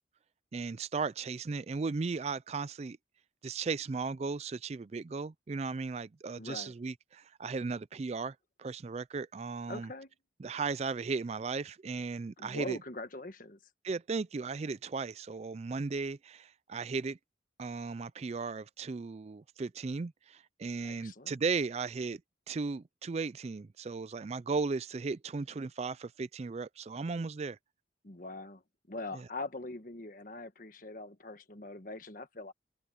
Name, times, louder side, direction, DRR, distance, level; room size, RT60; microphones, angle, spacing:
voice 1, 0.5-3.0 3.4-9.9 10.4-12.8 13.8-17.2 17.6-22.2 22.5-27.6 29.1-29.3, right 4 dB, 35° right, 0.4 m, -36 dB
voice 2, 6.4-6.7 9.7-10.1 12.4-13.6 20.8-21.3 28.0-28.6 28.9-32.5, left 2 dB, 45° left, 1.4 m, -42 dB
head